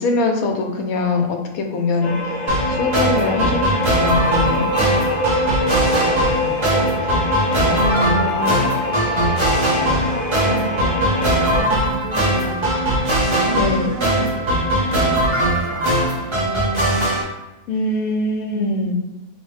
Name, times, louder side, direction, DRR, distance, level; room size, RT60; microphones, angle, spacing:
voice 1, 0.0-2.1 2.7-3.6 4.0-4.7 7.0-7.1 7.7-8.7 13.5-13.9 17.7-18.9, left 2 dB, 75° left, 3 dB, 1.0 m, -22 dB
sound 1, 2.0-11.6, left 2 dB, 45° left, 0.5 m, -25 dB
sound 2, 2.5-17.2, right 1 dB, 30° right, 0.5 m, -20 dB
voice 2, 5.4-6.9 7.6-8.2 8.9-11.1 11.4-12.7 13.2-16.0 16.3-16.5 18.5-18.8, right 2 dB, 65° right, 0 dB, 0.8 m, -33 dB
4.6 x 2.1 x 3.2 m, 1.0 s
omnidirectional pair, 1.6 m